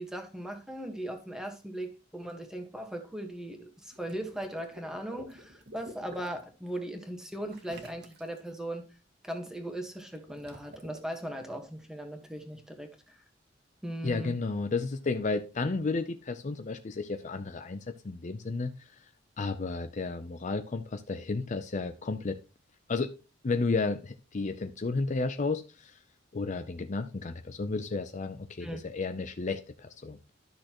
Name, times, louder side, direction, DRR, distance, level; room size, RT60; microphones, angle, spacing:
voice 1, 0.0-8.9 9.2-13.2 13.8-14.4 28.6-28.8, right 1 dB, 5° right, 1.4 m, -38 dB
Water / Liquid, 3.9-6.4 7.5-8.5 10.0-11.0, right 1 dB, 60° right, 1.8 m, -50 dB
voice 2, 14.0-18.7 19.4-22.4 22.9-23.1 23.4-26.0 26.3-30.2, left 3 dB, 40° left, 0.5 m, -32 dB
12.0 x 6.3 x 3.0 m
head